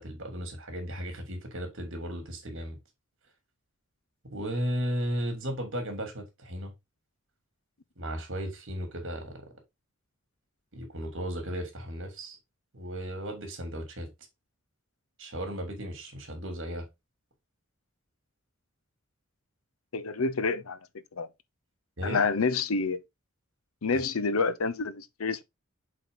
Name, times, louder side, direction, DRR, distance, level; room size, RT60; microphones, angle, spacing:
voice 1, 0.0-2.8 4.3-6.7 8.0-9.4 10.7-12.4 12.7-14.1 15.2-16.9 22.0-22.2, equal, 60° right, 3.0 m, -35 dB
voice 2, 19.9-20.8 21.2-21.3 22.0-23.0 23.8-25.4, left 4 dB, 80° left, 0.8 m, -28 dB
7.7 x 4.3 x 3.9 m
head